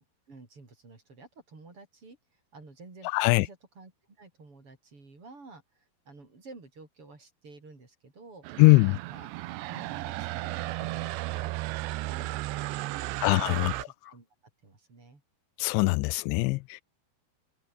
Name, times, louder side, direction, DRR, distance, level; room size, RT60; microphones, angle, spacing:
voice 1, 0.3-2.2 2.5-3.9 4.2-8.4 8.9-9.3 9.7-12.4 13.0-14.3 14.6-15.2, right 3 dB, 30° right, 5.7 m, -51 dB
voice 2, 3.1-3.5 8.6-9.0 13.2-13.9 15.6-16.8, left 25 dB, 90° left, 2.9 m, -22 dB
sound 1, 8.4-13.8, right 18 dB, 85° right, 3.0 m, -34 dB
omnidirectional pair, 5.1 m